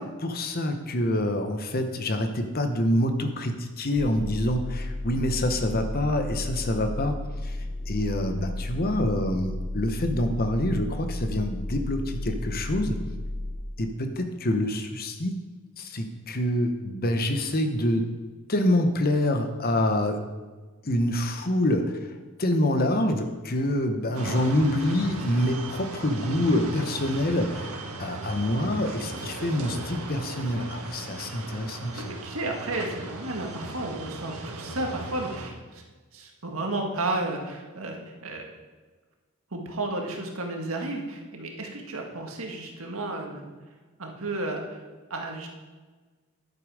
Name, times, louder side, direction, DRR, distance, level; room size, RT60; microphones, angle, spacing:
voice 1, 0.2-7.2 7.4-13.0 13.8-15.4 15.8-18.1 18.5-20.2 20.8-22.1 22.4-32.2, left 1 dB, 45° left, 7 dB, 1.0 m, -26 dB
sound 1, 4.0-13.5, left 1 dB, 70° left, 2.2 m, -33 dB
sound 2, 24.1-35.5, right 2 dB, 85° right, 1.6 m, -37 dB
voice 2, 31.9-35.8 36.1-38.5 39.5-43.5 44.0-44.8 45.1-45.5, right 2 dB, 70° right, 2 dB, 1.8 m, -33 dB
11.0 x 8.6 x 4.9 m, 1.3 s
head